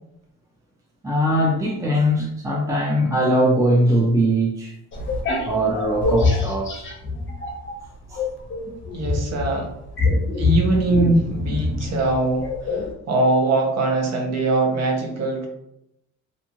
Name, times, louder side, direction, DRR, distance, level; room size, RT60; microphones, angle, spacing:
voice 1, 1.0-4.7 5.4-6.9 8.1-8.2, equal, 10° right, -2 dB, 0.5 m, -21 dB
sound 1, 4.9-7.8 8.1-12.9, left 3 dB, 40° left, 0.8 m, -24 dB
voice 2, 8.9-9.7 10.4-15.5, right 2 dB, 60° right, 2 dB, 0.8 m, -22 dB
2.6 x 2.3 x 2.9 m, 0.81 s
cardioid pair, 90°, 30 cm